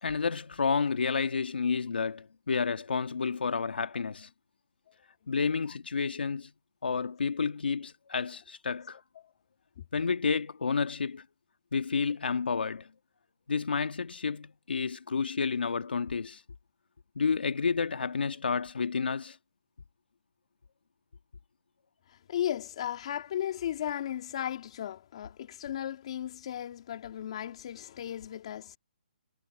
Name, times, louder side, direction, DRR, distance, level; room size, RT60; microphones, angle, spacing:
voice 1, 0.0-4.3 5.3-6.5 6.8-9.0 9.9-11.2 11.7-12.9 13.5-16.4 17.1-19.4, left 5 dB, 80° left, 1.5 m, -30 dB
voice 2, 22.3-28.8, left 10 dB, 35° left, 2.4 m, -35 dB
hypercardioid pair, 165°, 5 cm